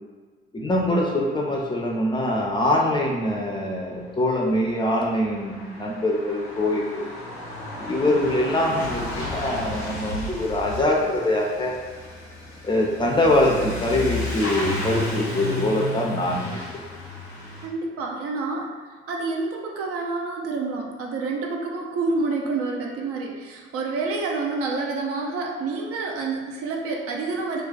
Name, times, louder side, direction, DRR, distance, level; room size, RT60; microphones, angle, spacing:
voice 1, 0.5-7.1 7.8-11.8 12.6-16.6, left 1 dB, 15° left, -2 dB, 0.5 m, -23 dB
Truck / Accelerating revving vroom, 4.0-4.1 4.3-17.7, left 2 dB, 90° left, 0.5 m, -33 dB
voice 2, 17.6-18.7 19.1-27.6, right 3 dB, 50° right, 0 dB, 0.5 m, -28 dB
2.3 x 2.2 x 3.8 m, 1.4 s
figure-of-eight pair, 40°, 31 cm